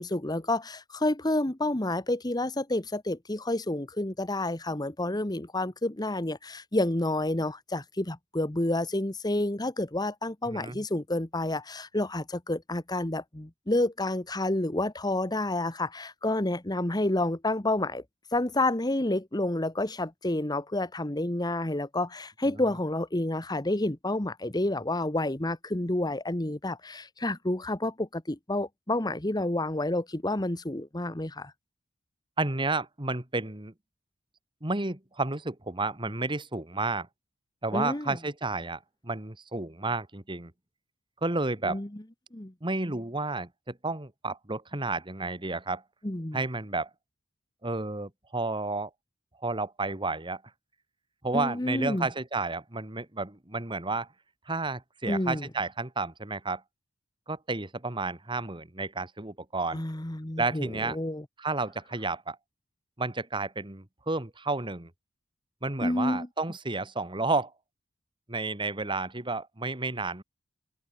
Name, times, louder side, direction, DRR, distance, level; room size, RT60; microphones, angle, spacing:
voice 1, 0.0-18.0 18.3-31.5 37.7-38.2 41.6-41.9 42.3-42.5 46.0-46.4 51.3-52.1 55.1-55.4 59.7-61.2 65.8-66.3, left 1 dB, 20° left, 1.3 m, -29 dB
voice 2, 10.5-10.8 32.4-33.7 34.6-37.1 37.6-40.5 41.2-41.8 42.6-45.8 46.3-46.9 47.6-48.9 49.4-50.4 51.2-54.1 54.5-56.6 57.3-59.8 60.4-61.0 61.4-62.4 63.0-64.9 65.6-67.5 68.3-70.2, right 3 dB, 25° right, 2.1 m, -31 dB
head